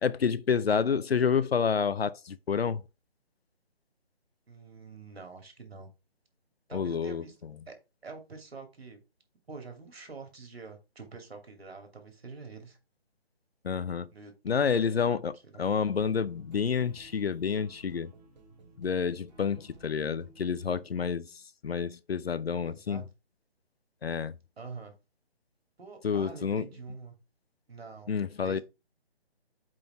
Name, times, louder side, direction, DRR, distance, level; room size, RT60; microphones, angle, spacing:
voice 1, 0.0-2.8 6.7-7.2 13.6-14.1 14.4-18.1 18.8-23.0 24.0-24.3 26.0-26.6 28.1-28.6, left 6 dB, 70° left, 0.7 m, -29 dB
voice 2, 4.5-5.9 6.7-7.4 7.7-7.8 8.0-9.0 9.5-12.8 14.1-14.7 22.6-23.1 24.6-24.9 25.8-27.1 27.7-28.6, right 4 dB, 70° right, 2.7 m, -46 dB
A Hectic Backpacker Trip, 15.6-20.9, right 3 dB, 40° right, 1.9 m, -56 dB
5.7 x 5.1 x 4.5 m
figure-of-eight pair, 150°, 32 cm